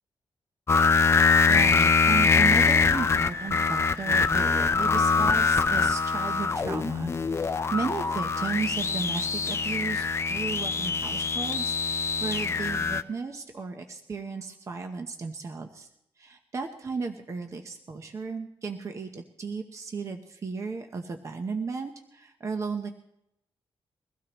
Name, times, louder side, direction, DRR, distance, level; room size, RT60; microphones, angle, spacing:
sound 1, 0.7-13.0, left 5 dB, 25° left, 0.5 m, -24 dB
voice 1, 1.5-15.9 16.2-22.9, right 4 dB, 30° right, 5 dB, 0.9 m, -35 dB
22.5 x 16.0 x 3.0 m, 0.80 s
wide cardioid pair, 175°, 10 cm